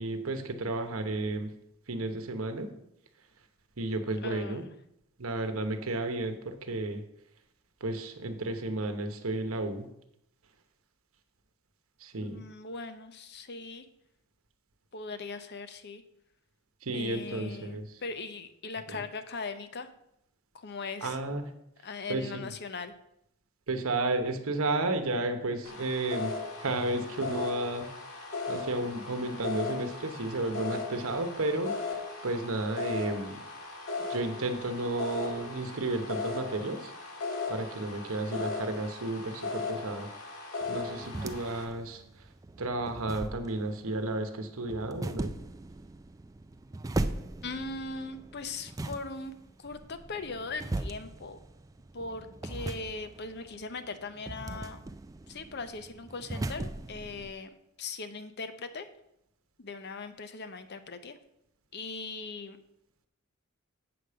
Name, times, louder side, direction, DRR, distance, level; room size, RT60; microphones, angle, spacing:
voice 1, 0.0-1.5 1.9-2.7 3.8-4.6 5.2-7.0 7.8-9.9 12.0-12.4 16.8-17.8 21.0-21.5 22.1-22.5 23.7-27.9 28.5-31.7 32.2-33.3 34.1-36.9 37.5-40.1 40.7-42.0 42.6-45.4, right 2 dB, 70° right, 7 dB, 1.0 m, -32 dB
voice 2, 4.2-4.6 12.2-13.8 14.9-16.0 16.9-19.9 20.5-21.2 21.8-22.9 47.4-49.3 49.6-51.4 51.9-54.8 55.3-57.5 57.8-58.9 59.6-61.2 61.7-62.6, left 3 dB, 50° left, 10 dB, 0.7 m, -39 dB
sound 1, 25.6-41.6, left 4 dB, 80° left, 1.7 m, -37 dB
sound 2, 40.6-57.3, right 2 dB, 15° right, 0.3 m, -39 dB
7.8 x 5.0 x 6.8 m, 0.78 s
head